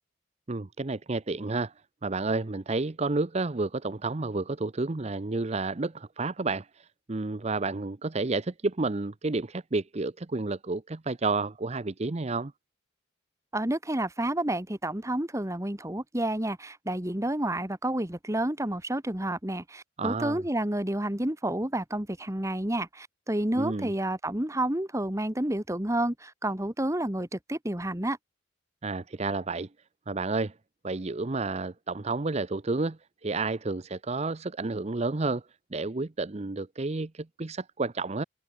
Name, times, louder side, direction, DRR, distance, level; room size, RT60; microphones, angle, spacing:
voice 1, 0.5-1.7 2.0-12.5 20.0-20.4 23.5-23.9 28.8-29.7 30.1-30.5 30.8-35.4 35.7-38.2, right 3 dB, 35° right, 0.7 m, -30 dB
voice 2, 13.5-28.2, right 1 dB, 15° right, 1.6 m, -30 dB
open air
head